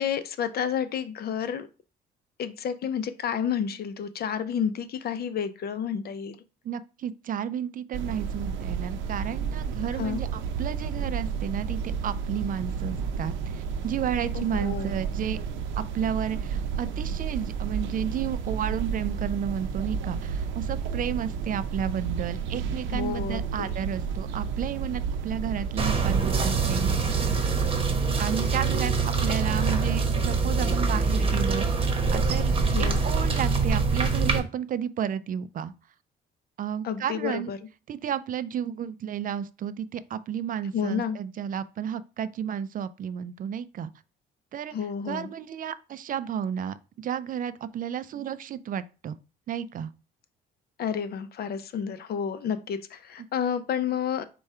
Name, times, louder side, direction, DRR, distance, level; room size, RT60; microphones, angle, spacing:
voice 1, 0.0-1.7 2.4-6.4 10.0-10.2 14.3-15.0 22.9-23.7 32.7-33.0 36.8-37.6 40.7-41.2 44.7-45.3 50.8-54.2, left 8 dB, 55° left, 0.6 m, -30 dB
voice 2, 6.6-15.4 15.8-27.4 28.2-35.7 36.6-37.5 37.9-43.9 44.5-44.7 45.0-49.2 49.5-49.9, right 8 dB, 45° right, 0.4 m, -32 dB
sound 1, 7.9-27.8, right 6 dB, 85° right, 0.6 m, -31 dB
sound 2, 25.8-34.4, right 4 dB, 30° right, 1.0 m, -24 dB
4.7 x 2.3 x 4.3 m
cardioid pair, 80°, 19 cm